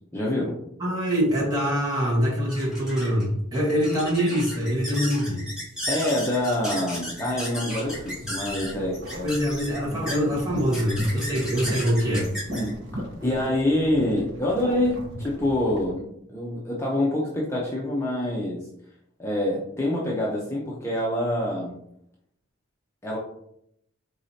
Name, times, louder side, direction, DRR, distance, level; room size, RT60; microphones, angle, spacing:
voice 1, 0.1-0.6 5.9-9.4 9.9-10.0 12.5-12.8 13.2-18.7 19.2-21.7 23.0-23.2, left 1 dB, 15° left, -4 dB, 0.7 m, -26 dB
voice 2, 0.8-5.4 9.2-12.3, equal, 20° right, -5 dB, 1.4 m, -24 dB
sound 1, 1.3-14.2, equal, 5° right, 1.7 m, -36 dB
sound 2, 7.8-15.9, equal, 60° right, 1.0 m, -39 dB
4.8 x 3.9 x 2.8 m, 0.74 s
head